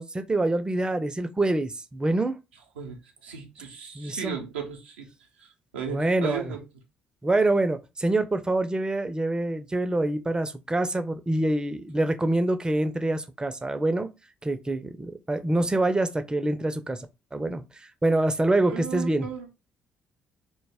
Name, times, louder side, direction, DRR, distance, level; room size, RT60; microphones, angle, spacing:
voice 1, 0.0-2.4 4.0-4.4 5.9-6.5 7.2-14.1 14.4-17.1 17.3-19.3, right 2 dB, 15° right, 0.4 m, -26 dB
voice 2, 2.8-6.6 18.7-19.5, right 7 dB, 85° right, 0.4 m, -36 dB
2.1 x 2.1 x 3.4 m
hypercardioid pair, 45°, 5 cm